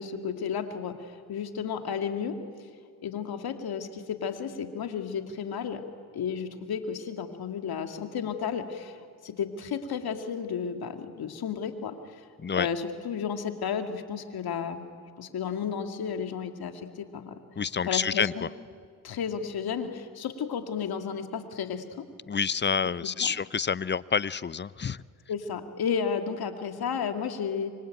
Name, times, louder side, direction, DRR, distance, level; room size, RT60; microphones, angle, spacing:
voice 1, 0.0-2.4 3.0-5.8 6.1-9.0 9.2-12.0 12.6-14.8 15.2-17.3 17.8-18.5 19.0-22.1 23.0-23.3 25.3-27.7, left 7 dB, 70° left, 6 dB, 2.4 m, -32 dB
voice 2, 17.6-18.5 22.3-25.0, left 6 dB, 30° left, 19 dB, 0.6 m, -28 dB
27.0 x 24.5 x 9.1 m, 2.2 s
supercardioid pair, 60°, 39 cm